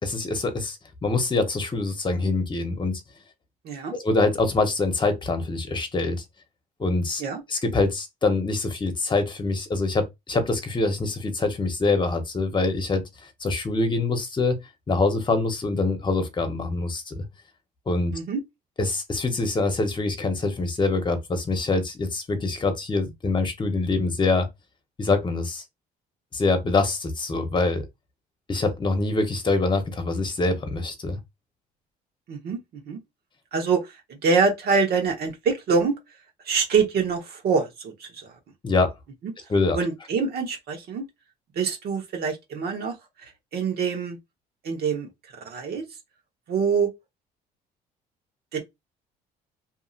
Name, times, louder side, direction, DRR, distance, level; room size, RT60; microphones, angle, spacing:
voice 1, 0.0-3.0 3.9-6.2 6.8-7.2 7.5-13.0 13.4-14.6 14.9-17.2 17.9-18.1 18.8-24.5 25.0-25.6 26.3-27.8 28.5-31.2 38.6-38.9 39.5-39.8, left 3 dB, 25° left, 1.0 m, -24 dB
voice 2, 3.6-4.0 7.2-7.4 18.1-18.4 32.3-33.0 33.5-36.0 36.4-38.3 39.7-41.0 41.5-43.0 43.2-44.2 44.6-45.1 45.4-45.8 46.5-46.9 48.5-48.6, right 5 dB, 60° right, 1.3 m, -25 dB
2.8 x 2.6 x 2.5 m
supercardioid pair, 80°, 18 cm